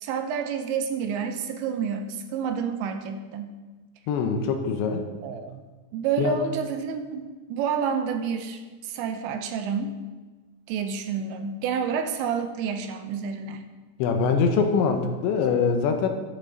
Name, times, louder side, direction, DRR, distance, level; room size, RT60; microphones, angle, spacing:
voice 1, 0.0-3.6 5.2-5.6 5.9-10.0 10.7-13.6, right 6 dB, 80° right, 7 dB, 3.0 m, -29 dB
voice 2, 4.1-5.1 6.2-6.3 14.0-16.1, left 5 dB, 80° left, 5 dB, 3.2 m, -23 dB
11.5 x 11.0 x 4.0 m, 1.3 s
omnidirectional pair, 5.3 m